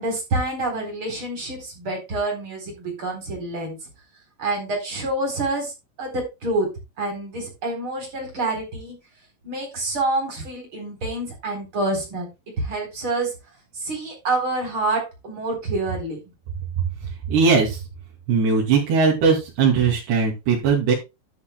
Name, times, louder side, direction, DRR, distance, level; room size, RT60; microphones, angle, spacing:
voice 1, 0.0-3.8 4.4-5.7 6.0-6.7 7.0-9.0 9.4-12.3 12.6-13.3 13.8-16.2, right 2 dB, 30° right, 2 dB, 4.5 m, -27 dB
voice 2, 17.3-17.8 18.3-20.9, right 5 dB, 70° right, -4 dB, 4.7 m, -19 dB
11.5 x 10.0 x 2.3 m, 0.25 s
omnidirectional pair, 5.2 m